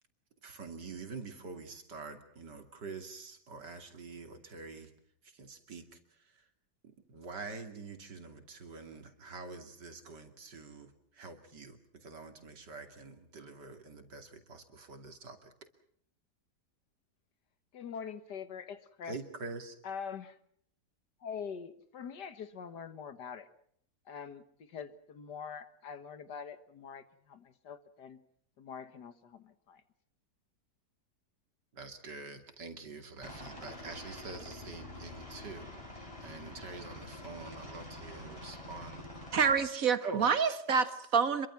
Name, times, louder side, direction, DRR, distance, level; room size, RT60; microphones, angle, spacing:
voice 1, 0.4-4.9 5.2-6.4 6.8-15.5 19.0-19.8 31.7-39.1 40.0-40.2, right 4 dB, 85° right, 3.3 m, -46 dB
voice 2, 17.7-19.2 19.8-20.4 21.2-23.5 24.1-28.2 28.6-29.8, left 6 dB, 80° left, 2.0 m, -44 dB
Aircraft, 33.2-39.5, left 1 dB, 20° left, 6.6 m, -47 dB
voice 3, 39.3-41.5, right 6 dB, 55° right, 1.9 m, -27 dB
27.0 x 23.0 x 6.0 m
omnidirectional pair, 1.8 m